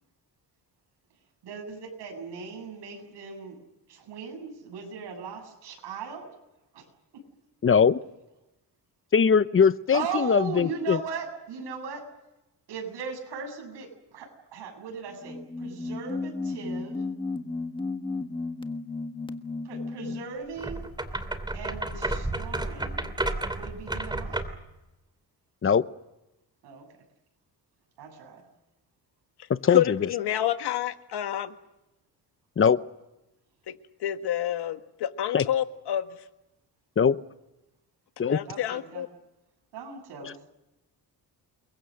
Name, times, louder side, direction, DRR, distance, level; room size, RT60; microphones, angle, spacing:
voice 1, 1.4-3.6 3.9-6.3 6.7-6.9 7.1-7.2 9.9-12.1 12.7-17.0 19.6-20.8 21.5-23.1 23.5-24.5 26.6-26.9 28.0-28.5 38.5-39.1 39.7-40.5, right 5 dB, 85° right, 3 dB, 7.7 m, -38 dB
voice 2, 7.6-8.0 9.1-11.0 25.6-25.8 29.5-30.0 32.6-32.8 35.3-35.4 37.0-37.2 38.2-38.4, left 6 dB, 30° left, 14 dB, 0.9 m, -21 dB
sound 1, 15.1-20.4, left 3 dB, 10° left, 1.6 m, -34 dB
sound 2, 20.6-24.7, right 2 dB, 10° right, 2.9 m, -32 dB
voice 3, 29.7-31.5 33.7-36.2 38.2-39.1, left 11 dB, 75° left, 9 dB, 1.7 m, -28 dB
29.5 x 23.0 x 6.6 m, 0.95 s
cardioid pair, 110°, 40 cm